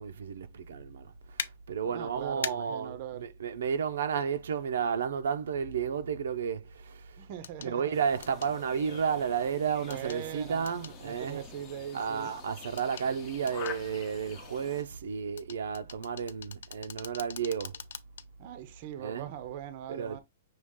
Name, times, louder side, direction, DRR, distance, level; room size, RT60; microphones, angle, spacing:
voice 1, 0.0-7.3 7.6-11.4 11.9-17.8 19.0-19.3 19.9-20.2, right 7 dB, 80° right, 0.6 m, -32 dB
sound 1, 1.4-1.5 2.4-2.5 4.5-4.6 7.4-7.7 8.2-8.5 9.9-10.2 10.7-11.0 12.8-13.1 13.5-13.8 15.4-18.3 18.7-18.8, left 8 dB, 70° left, 0.5 m, -40 dB
voice 2, 1.9-3.2 7.2-8.0 9.9-10.7 11.0-12.3 18.4-20.2, right 11 dB, 35° right, 0.6 m, -41 dB
sound 2, 7.9-14.8, left 7 dB, 20° left, 0.6 m, -47 dB
6.2 x 2.4 x 3.5 m
hypercardioid pair, 175°, 0 cm